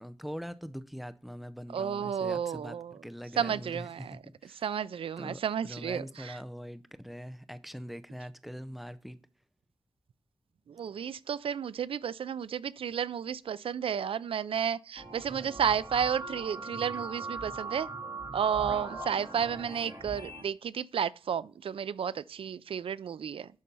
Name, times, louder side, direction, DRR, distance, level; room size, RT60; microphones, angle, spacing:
voice 1, 0.0-2.8 3.0-4.6 5.2-9.2, equal, ahead, 0.5 m, -42 dB
voice 2, 1.7-2.9 3.4-4.2 4.6-6.4 10.7-17.9 18.3-23.5, right 8 dB, 80° right, 0.4 m, -32 dB
sound 1, 15.0-20.4, right 3 dB, 40° right, 3.2 m, -40 dB
11.0 x 4.2 x 5.4 m
wide cardioid pair, 165°, 9 cm